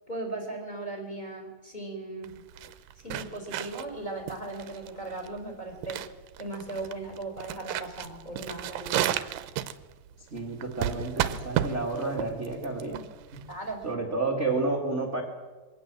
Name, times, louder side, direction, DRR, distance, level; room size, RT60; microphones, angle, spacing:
voice 1, 0.1-2.3 3.0-6.0 6.4-9.1 13.5-13.8, right 2 dB, 10° left, 3 dB, 4.0 m, -37 dB
sound 1, 2.2-13.9, right 11 dB, 75° right, 2.2 m, -33 dB
voice 2, 10.2-13.0 13.3-13.4 13.8-15.2, right 3 dB, 35° right, -1 dB, 1.1 m, -30 dB
23.0 x 18.0 x 7.6 m, 1.3 s
omnidirectional pair, 4.7 m